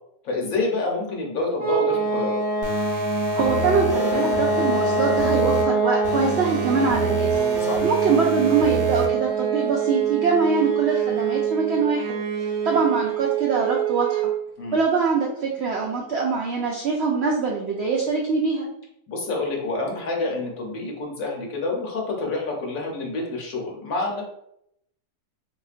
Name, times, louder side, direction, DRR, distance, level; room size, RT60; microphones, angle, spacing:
voice 1, 0.2-2.4 7.6-7.8 14.6-14.8 19.1-24.2, left 3 dB, 60° left, -1 dB, 1.1 m, -27 dB
sound 1, 1.6-14.4, right 5 dB, 65° right, 1.2 m, -24 dB
sound 2, 2.6-5.6 6.0-9.0, right 3 dB, 45° right, 0.9 m, -29 dB
voice 2, 3.3-7.4 7.8-12.2 12.6-14.3 14.7-18.7, right 4 dB, 85° right, -2 dB, 0.5 m, -23 dB
3.7 x 2.8 x 2.4 m, 0.77 s
omnidirectional pair, 1.8 m